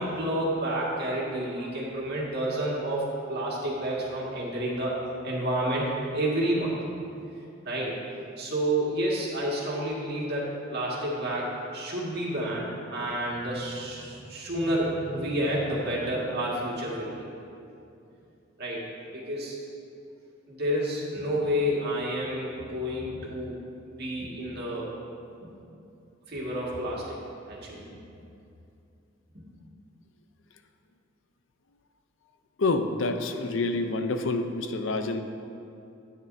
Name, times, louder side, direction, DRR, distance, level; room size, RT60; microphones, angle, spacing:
voice 1, 0.0-5.0 5.2-6.7 7.7-8.0 8.4-17.1 18.6-18.8 19.1-19.6 20.5-24.9 25.4-25.5 26.3-27.2 27.5-27.9 29.3-29.4, right 1 dB, 55° right, -5 dB, 1.9 m, -30 dB
voice 2, 32.6-35.2, left 3 dB, 70° left, 7 dB, 0.6 m, -27 dB
12.5 x 9.6 x 2.7 m, 2.7 s
head